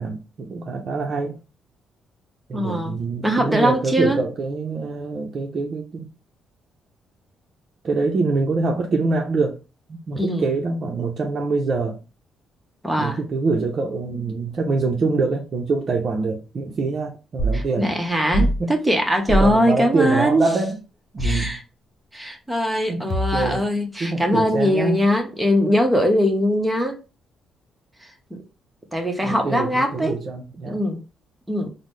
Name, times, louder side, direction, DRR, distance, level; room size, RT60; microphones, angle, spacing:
voice 1, 0.0-1.4 2.5-6.1 7.8-9.6 9.9-12.0 13.0-18.0 18.4-18.7 19.3-20.8 21.1-21.5 22.9-23.6 24.0-25.0 29.2-30.8, right 3 dB, 50° right, 0.6 m, -25 dB
voice 2, 2.5-4.2 10.1-10.6 12.8-13.2 17.5-20.5 21.2-21.6 22.1-27.0 28.3-28.4 28.9-30.2 30.7-31.0 31.5-31.7, equal, 10° right, 0.9 m, -21 dB
sound 1, 17.4-17.6 18.3-18.6 19.3-19.5 21.2-21.5 23.1-23.6, right 1 dB, 45° left, 0.8 m, -22 dB
3.9 x 2.0 x 3.2 m
cardioid pair, 90°, 0 cm